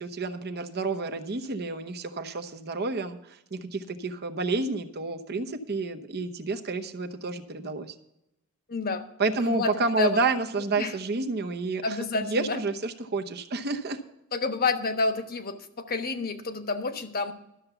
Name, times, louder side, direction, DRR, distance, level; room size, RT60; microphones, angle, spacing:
voice 1, 0.0-3.2 3.5-7.9 9.2-14.0, right 3 dB, 50° right, 7 dB, 0.9 m, -29 dB
voice 2, 8.7-9.0 9.5-9.7 10.0-10.1 10.8-10.9 11.8-12.6 14.3-17.3, left 3 dB, 45° left, 8 dB, 1.1 m, -29 dB
12.5 x 7.0 x 6.8 m, 0.84 s
head